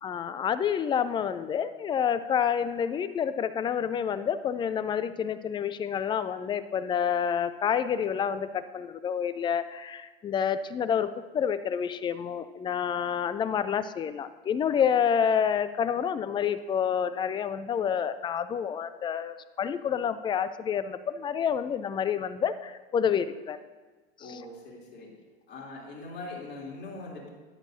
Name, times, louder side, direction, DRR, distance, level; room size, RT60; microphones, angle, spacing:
voice 1, 0.0-23.6 24.3-24.4, left 8 dB, 15° left, 13 dB, 0.4 m, -28 dB
voice 2, 24.2-25.1 25.5-27.3, left 2 dB, 35° left, -4 dB, 3.3 m, -41 dB
13.0 x 10.0 x 2.7 m, 1.3 s
hypercardioid pair, 90°, 32 cm